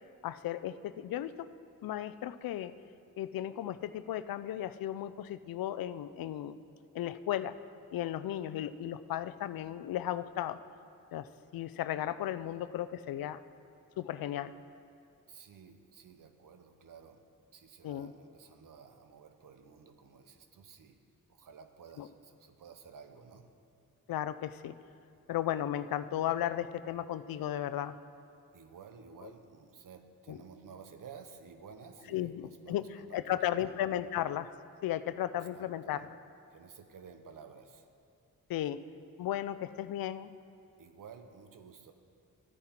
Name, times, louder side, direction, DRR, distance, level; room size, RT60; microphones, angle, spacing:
voice 1, 0.2-1.5 1.8-2.7 3.2-6.6 6.9-7.5 7.9-10.6 11.1-13.4 14.0-14.5 17.8-18.1 22.0-22.1 24.1-24.7 25.3-27.9 30.3-30.4 32.1-32.8 33.1-34.5 34.8-36.0 38.5-38.8 39.2-40.3, left 12 dB, 80° left, 13 dB, 0.5 m, -35 dB
voice 2, 15.3-21.0 21.3-23.5 28.5-33.7 35.5-36.1 36.5-37.9 40.8-41.9, right 6 dB, 65° right, 7 dB, 1.0 m, -53 dB
13.5 x 9.9 x 4.3 m, 2.6 s
cardioid pair, 80°, 35 cm